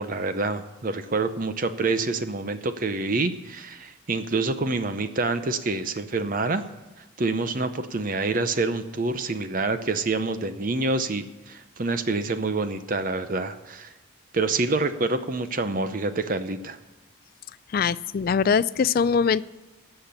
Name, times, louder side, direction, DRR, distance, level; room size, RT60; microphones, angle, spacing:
voice 1, 0.0-6.6 7.2-13.9 14.3-16.8, right 3 dB, 45° right, 10 dB, 0.7 m, -27 dB
voice 2, 17.7-19.4, left 6 dB, 45° left, 17 dB, 0.3 m, -22 dB
15.5 x 5.8 x 8.1 m, 1.1 s
head